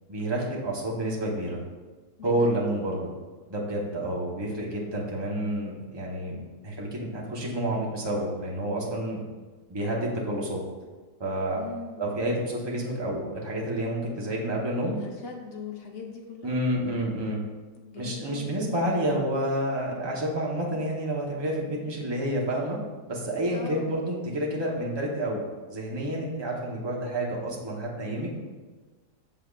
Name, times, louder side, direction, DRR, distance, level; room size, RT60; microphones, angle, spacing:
voice 1, 0.1-1.6 2.2-3.0 3.5-6.4 6.6-9.2 9.7-10.6 11.2-11.6 12.0-15.0 16.4-17.4 18.0-22.8 23.1-28.3, right 1 dB, 20° right, -3 dB, 0.8 m, -29 dB
voice 2, 2.2-2.5 11.6-12.0 15.0-16.6 17.8-18.5 23.5-23.9, left 5 dB, 55° left, 0 dB, 0.7 m, -40 dB
6.9 x 5.8 x 2.4 m, 1.3 s
omnidirectional pair, 1.7 m